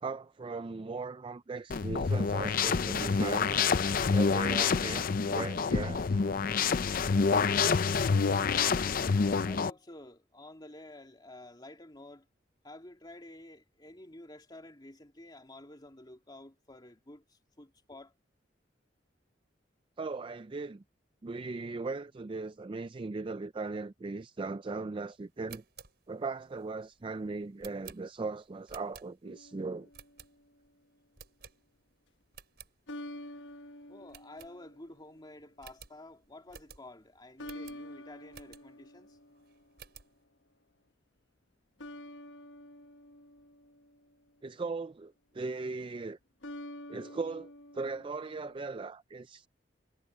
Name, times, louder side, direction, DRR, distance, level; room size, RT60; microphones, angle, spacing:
voice 1, 0.0-3.7 4.1-6.4 8.2-8.3 8.8-9.4 20.0-20.8 21.2-25.6 26.1-29.9 44.4-46.2 46.9-49.5, right 3 dB, 30° right, 0.4 m, -38 dB
sound 1, 1.7-9.7, left 5 dB, 50° left, 0.5 m, -27 dB
voice 2, 9.4-12.3 12.6-18.1 33.9-39.2, left 1 dB, 25° left, 2.7 m, -51 dB
sound 2, 25.3-29.5 29.9-30.7 31.1-31.9 32.2-32.7 33.2-33.3 33.5-33.7 34.1-35.0 35.2-35.3 35.6-38.9 39.3-40.2, right 7 dB, 60° right, 5.5 m, -54 dB
sound 3, 29.2-30.6 32.9-35.3 37.4-40.0 41.8-44.3 46.4-48.7, left 1 dB, 85° left, 1.1 m, -48 dB
head